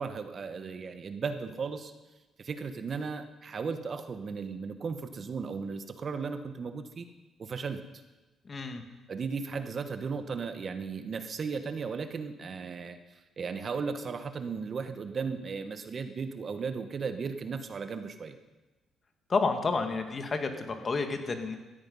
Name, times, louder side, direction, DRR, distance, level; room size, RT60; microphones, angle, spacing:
voice 1, 0.0-1.9 2.4-7.1 7.4-7.8 9.1-13.0 13.4-18.3, right 5 dB, 45° right, 8 dB, 1.2 m, -36 dB
voice 2, 8.5-8.8 19.3-21.6, left 4 dB, 40° left, 6 dB, 2.0 m, -30 dB
17.0 x 14.0 x 5.5 m, 1.1 s
cardioid pair, 90°, 0 cm